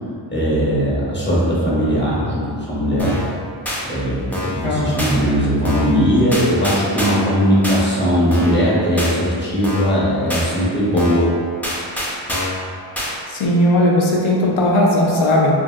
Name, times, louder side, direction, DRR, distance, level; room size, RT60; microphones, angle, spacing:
voice 1, 0.3-3.2 3.8-11.2, equal, 25° left, -8 dB, 0.7 m, -19 dB
sound 1, 3.0-3.3 3.7-3.8 4.3-4.6 5.0-5.1 5.6-6.0 6.3-7.3 7.6-7.8 8.3-8.6 9.0-9.1 9.6-10.0 10.3-10.5 11.0-11.3 11.6-12.6 13.0-13.1, left 1 dB, 5° left, 0.3 m, -25 dB
voice 2, 4.6-5.2 13.3-15.6, left 1 dB, 75° left, -2 dB, 0.6 m, -17 dB
2.8 x 2.8 x 2.2 m, 2.4 s
wide cardioid pair, 125°, 48 cm